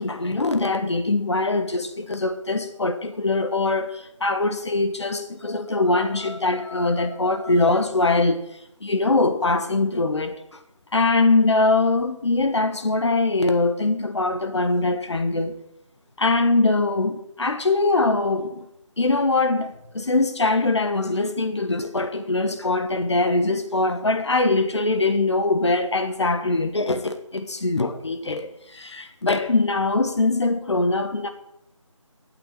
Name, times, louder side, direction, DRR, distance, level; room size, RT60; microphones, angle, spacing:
voice 1, 0.0-8.4 8.8-10.4 10.9-15.5 16.2-18.6 19.0-31.3, left 2 dB, 55° left, 1.4 m, -22 dB
9.2 x 6.8 x 8.7 m
figure-of-eight pair, 160°, 17 cm